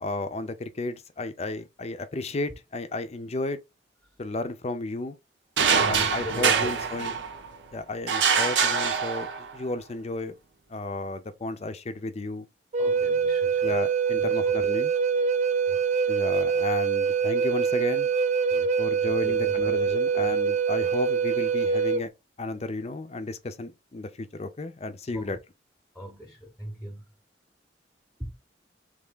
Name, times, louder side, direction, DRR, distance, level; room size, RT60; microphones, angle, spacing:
voice 1, 0.0-3.6 4.2-5.2 5.9-7.1 7.7-10.3 10.7-12.5 13.6-14.9 16.1-18.1 18.8-22.1 22.4-25.4, left 2 dB, 35° left, 0.5 m, -33 dB
sound 1, 5.6-7.5 8.1-9.6, right 6 dB, 85° right, 0.8 m, -24 dB
voice 2, 5.7-6.9 12.8-13.8 14.2-15.0 15.7-15.9 18.5-20.4 25.1-25.4 25.9-27.1 28.2-28.3, equal, ahead, 0.8 m, -40 dB
Wind instrument woodwind instrument, 12.7-22.0, right 6 dB, 40° right, 0.3 m, -24 dB
3.4 x 3.1 x 3.7 m
head